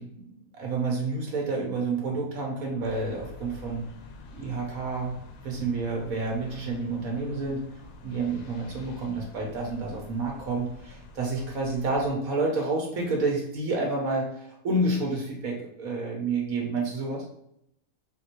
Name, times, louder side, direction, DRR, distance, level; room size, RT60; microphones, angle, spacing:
voice 1, 0.0-3.9 4.3-7.6 8.0-17.2, right 3 dB, 80° right, -1 dB, 1.6 m, -29 dB
sound 1, 2.8-12.1, left 3 dB, 80° left, 1.0 m, -47 dB
4.0 x 2.8 x 4.5 m, 0.74 s
omnidirectional pair, 1.5 m